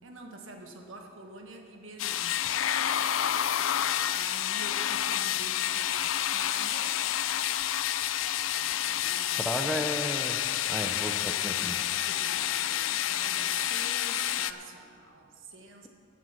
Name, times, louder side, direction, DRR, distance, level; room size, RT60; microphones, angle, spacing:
voice 1, 0.0-2.4 3.9-7.0 8.5-10.4 12.0-15.9, right 3 dB, 90° right, 3 dB, 1.5 m, -46 dB
sound 1, 2.0-14.5, left 11 dB, 90° left, 0.4 m, -29 dB
voice 2, 9.4-10.4 10.7-11.8, equal, ahead, 5 dB, 0.6 m, -33 dB
14.5 x 7.5 x 5.9 m, 2.3 s
head